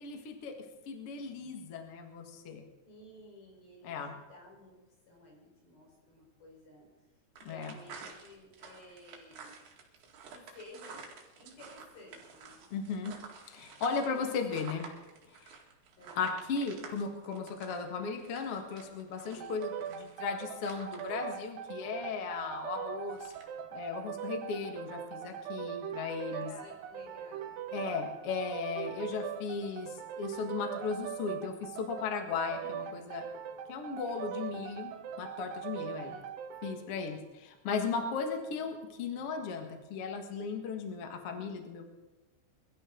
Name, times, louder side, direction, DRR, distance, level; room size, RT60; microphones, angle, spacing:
voice 1, 0.0-0.6 0.8-2.6 3.8-4.1 7.4-7.8 12.7-13.1 13.5-14.9 15.4-15.6 16.1-23.3 23.7-26.5 27.7-33.3 33.7-34.9 35.2-36.1 36.6-41.8, left 5 dB, 75° left, 4 dB, 1.3 m, -36 dB
voice 2, 2.8-4.8 5.1-6.9 7.4-9.6 10.3-11.1 11.4-12.7 14.0-14.5 16.0-16.2 19.2-19.6 26.3-27.6 32.5-33.0 33.9-34.6 36.0-36.3, left 1 dB, 50° left, -1 dB, 6.3 m, -54 dB
sound 1, 7.4-21.3 23.2-23.4, right 5 dB, 60° right, 3.6 m, -51 dB
sound 2, 19.4-36.8, right 8 dB, 85° right, 2.0 m, -41 dB
21.5 x 13.0 x 3.9 m, 1.1 s
omnidirectional pair, 5.6 m